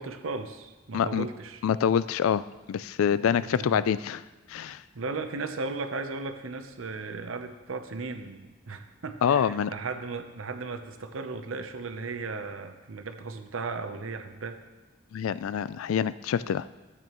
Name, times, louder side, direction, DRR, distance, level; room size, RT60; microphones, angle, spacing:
voice 1, 0.0-1.6 3.1-3.8 4.6-14.6, right 3 dB, 80° right, 7 dB, 0.7 m, -36 dB
voice 2, 0.9-1.3 1.6-2.4 2.7-4.2 4.5-4.8 9.2-9.7 15.1-16.7, left 8 dB, 85° left, 17 dB, 0.3 m, -26 dB
12.5 x 8.4 x 3.0 m, 1.1 s
head